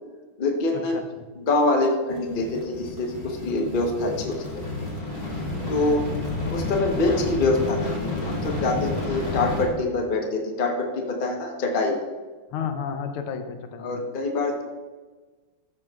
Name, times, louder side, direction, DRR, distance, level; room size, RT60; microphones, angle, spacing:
voice 1, 0.4-1.0 1.4-4.6 5.7-6.0 6.4-12.0 13.8-14.6, left 2 dB, 35° left, 1 dB, 0.8 m, -25 dB
voice 2, 0.9-1.3 5.7-6.0 12.5-14.0, left 6 dB, 85° left, 6 dB, 1.7 m, -32 dB
sound 1, 2.1-9.7, left 2 dB, 20° left, 2.3 m, -31 dB
13.0 x 7.6 x 2.4 m, 1.3 s
omnidirectional pair, 2.4 m